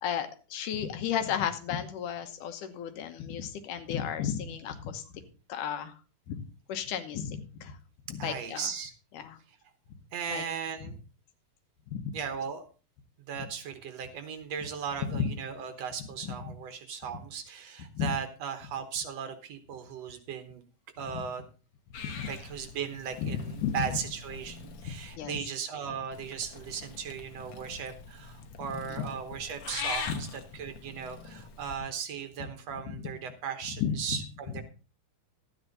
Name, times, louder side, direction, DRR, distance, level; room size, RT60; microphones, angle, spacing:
voice 1, 0.0-5.2 5.5-6.0 6.3-6.4 6.7-7.8 8.1-8.7 9.1-9.4 10.3-10.4 10.8-10.9 11.9-12.1 15.1-15.3 16.0-16.5 17.9-18.1 21.1-21.2 22.0-22.3 23.2-24.0 24.8-25.4 28.6-29.1 30.1-30.2 32.9-33.1 33.8-34.0, left 8 dB, 85° left, 9 dB, 2.7 m, -34 dB
voice 2, 8.2-8.9 10.1-11.0 12.1-12.6 13.3-20.6 21.0-21.4 22.3-34.6, right 7 dB, 60° right, 8 dB, 2.1 m, -37 dB
Purr / Meow, 21.9-25.2 26.1-31.8, left 5 dB, 60° left, 1.3 m, -43 dB
13.0 x 9.2 x 4.0 m, 0.34 s
omnidirectional pair, 3.6 m